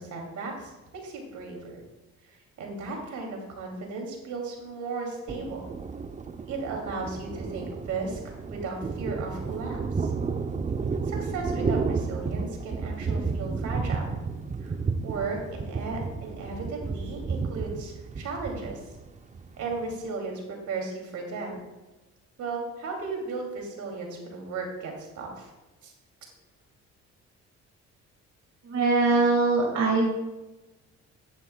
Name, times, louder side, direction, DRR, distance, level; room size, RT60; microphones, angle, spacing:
voice 1, 0.0-1.8 2.2-5.7 6.4-8.2 8.5-10.1 11.1-14.1 14.6-14.7 15.0-18.8 19.6-21.7 22.4-25.5 25.8-25.9, right 3 dB, 75° right, 1 dB, 2.6 m, -35 dB
Thunder, 5.3-20.1, right 4 dB, 25° right, 0.6 m, -32 dB
voice 2, 28.7-30.1, right 3 dB, 60° right, -1 dB, 1.9 m, -22 dB
11.0 x 10.0 x 2.2 m, 1.1 s
cardioid pair, 90°, 30 cm